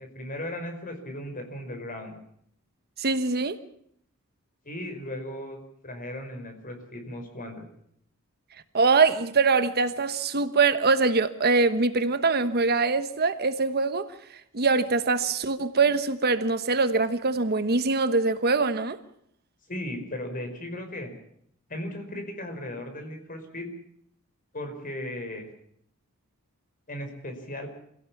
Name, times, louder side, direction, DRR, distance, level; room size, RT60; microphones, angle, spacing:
voice 1, 0.0-2.2 4.7-5.6 5.8-7.7 19.7-21.1 21.7-23.7 24.5-25.5 26.9-27.7, left 1 dB, 40° left, 5.1 m, -36 dB
voice 2, 3.0-3.6 8.7-14.1 14.5-19.0, right 4 dB, 45° right, 1.2 m, -23 dB
26.5 x 17.0 x 7.2 m
head